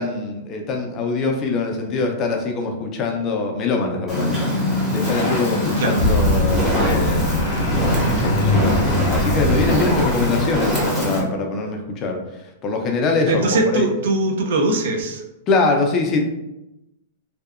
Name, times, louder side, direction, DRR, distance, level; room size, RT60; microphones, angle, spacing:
voice 1, 0.0-4.5 4.9-7.3 8.0-8.8 9.1-13.9 15.5-16.2, left 3 dB, 25° left, 3 dB, 0.3 m, -23 dB
Fire, 4.1-11.2, left 1 dB, 10° right, 0.7 m, -22 dB
sound 1, 5.0-11.0, left 1 dB, 80° left, 0.5 m, -23 dB
voice 2, 13.3-15.2, right 2 dB, 65° right, 2 dB, 0.4 m, -21 dB
2.6 x 2.1 x 2.4 m, 0.92 s
supercardioid pair, 160°, 0 cm